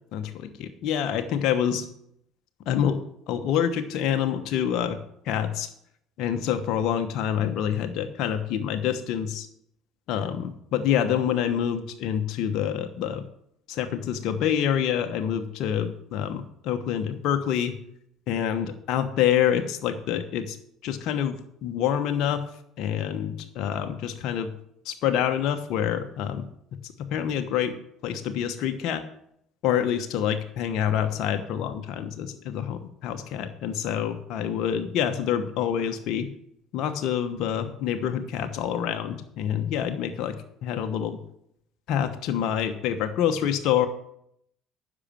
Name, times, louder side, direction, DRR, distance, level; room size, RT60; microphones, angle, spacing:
voice 1, 0.1-1.9 2.7-3.0 3.3-5.0 5.2-5.7 6.2-9.5 10.1-13.2 13.7-17.8 18.3-20.6 20.8-22.4 22.8-24.5 24.8-26.5 26.8-27.7 28.0-29.0 29.6-36.3 36.7-40.4 40.6-41.2 41.9-43.9, left 9 dB, 65° left, 6 dB, 1.1 m, -27 dB
9.9 x 6.3 x 7.1 m, 0.71 s
hypercardioid pair, 70°, 0 cm